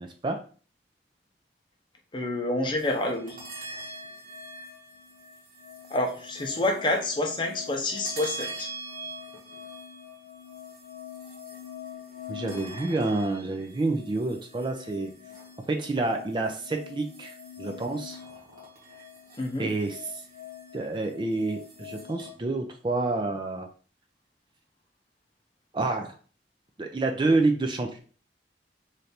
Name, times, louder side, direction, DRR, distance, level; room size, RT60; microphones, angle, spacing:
voice 1, 2.1-3.4 5.9-8.7 19.4-19.7, left 2 dB, 25° left, 2 dB, 0.7 m, -28 dB
sound 1, 2.8-22.3, left 2 dB, 50° right, 1.3 m, -43 dB
voice 2, 12.3-15.1 15.7-18.2 19.6-20.0 20.7-23.7 25.7-26.1 26.8-28.0, right 2 dB, 25° right, 4 dB, 0.4 m, -28 dB
3.3 x 2.5 x 4.2 m, 0.40 s
head